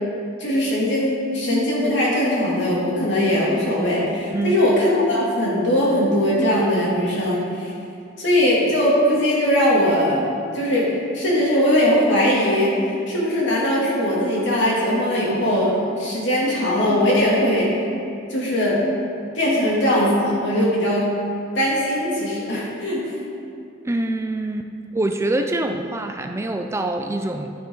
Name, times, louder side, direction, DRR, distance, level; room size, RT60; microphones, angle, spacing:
voice 1, 0.4-7.7 8.2-10.3 10.5-17.7 18.3-18.8 19.3-21.1 21.5-23.0, left 1 dB, 65° left, -6 dB, 2.9 m, -20 dB
voice 2, 23.8-27.5, right 1 dB, 15° right, 5 dB, 0.4 m, -25 dB
10.5 x 10.5 x 4.0 m, 2.5 s
head